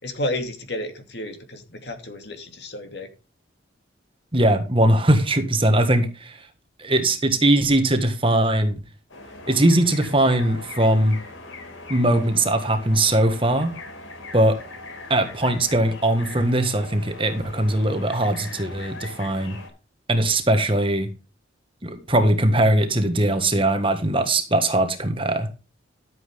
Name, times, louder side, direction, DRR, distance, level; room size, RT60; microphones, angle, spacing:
voice 1, 0.0-3.1, left 1 dB, 55° left, 2.6 m, -31 dB
voice 2, 4.3-6.5 6.8-8.8 9.5-11.2 11.9-13.7 14.3-14.6 15.1-19.6 20.1-21.1 21.8-25.5, right 1 dB, 25° right, 1.6 m, -20 dB
sound 1, 9.1-19.7, left 2 dB, 85° left, 4.2 m, -40 dB
13.0 x 7.8 x 3.6 m
head